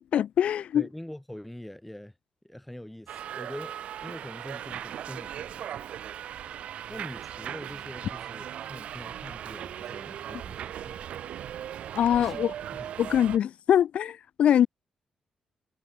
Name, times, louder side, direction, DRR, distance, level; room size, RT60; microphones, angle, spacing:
voice 1, 0.1-0.8 12.0-12.5 13.0-14.7, left 10 dB, 75° left, 1.9 m, -23 dB
voice 2, 0.7-2.1 2.4-5.8 6.9-11.2 12.2-13.2, left 1 dB, 5° left, 7.3 m, -44 dB
Subway metro underground, 3.1-13.4, right 10 dB, 80° right, 3.0 m, -38 dB
cardioid pair, 135°, 2 cm